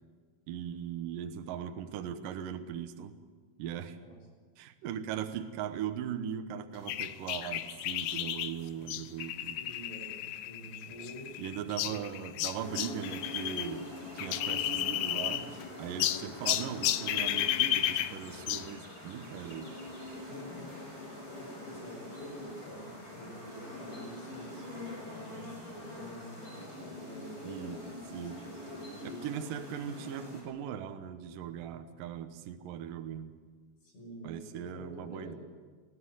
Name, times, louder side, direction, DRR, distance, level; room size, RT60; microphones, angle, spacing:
voice 1, 0.5-3.2 3.6-4.0 4.6-9.6 11.4-13.9 14.1-15.5 15.8-19.7 27.4-27.8 28.1-28.4 29.0-33.3 34.2-35.3, right 9 dB, 70° right, 8 dB, 2.1 m, -39 dB
sound 1, 6.9-13.7 14.0-15.6 16.0-18.7, left 13 dB, 85° left, 2.1 m, -33 dB
voice 2, 9.5-11.3 20.2-21.1 21.3-29.2 33.8-35.4, right 1 dB, 50° left, 0 dB, 7.8 m, -48 dB
sound 2, 12.5-30.4, left 1 dB, 20° left, 7.7 m, -44 dB
21.0 x 15.5 x 9.8 m, 1.5 s
omnidirectional pair, 5.1 m